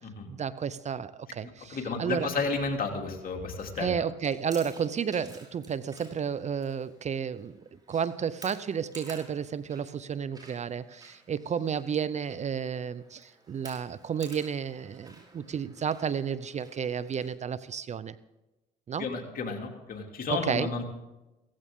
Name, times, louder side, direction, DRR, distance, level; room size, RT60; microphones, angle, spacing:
voice 1, 0.3-2.3 3.8-7.6 7.9-18.2 18.9-19.1 20.3-20.7, right 7 dB, 40° right, 16 dB, 0.6 m, -32 dB
voice 2, 1.4-4.0 19.0-20.8, left 4 dB, 55° left, 2 dB, 2.8 m, -32 dB
Chewing mastication, 4.2-17.3, right 2 dB, 20° right, 5.7 m, -53 dB
16.5 x 15.0 x 3.7 m, 1.0 s
supercardioid pair, 70°, 18 cm